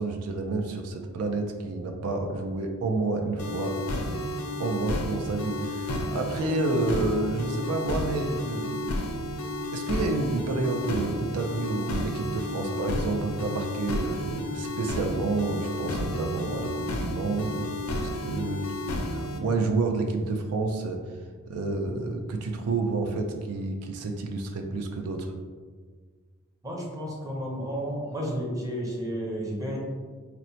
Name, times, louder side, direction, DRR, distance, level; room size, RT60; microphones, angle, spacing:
voice 1, 0.0-3.8 4.6-9.1 9.7-17.8 18.2-18.6 19.1-21.0 21.5-25.3, right 3 dB, 90° right, 4 dB, 0.4 m, -29 dB
sound 1, 3.4-19.4, left 1 dB, 85° left, 0.5 m, -32 dB
voice 2, 26.6-29.8, equal, 15° right, -2 dB, 0.6 m, -32 dB
4.2 x 2.1 x 2.7 m, 1.5 s
head